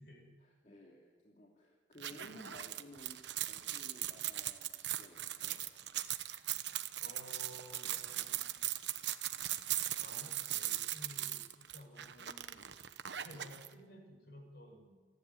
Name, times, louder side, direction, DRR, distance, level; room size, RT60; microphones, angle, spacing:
voice 1, 0.4-5.6, equal, 40° left, -2 dB, 2.7 m, -56 dB
sound 1, 2.0-13.7, right 13 dB, 70° right, 1.1 m, -39 dB
voice 2, 7.0-8.8 10.0-12.7 13.2-15.2, equal, 55° left, 2 dB, 6.2 m, -55 dB
29.0 x 11.0 x 9.7 m, 1.5 s
head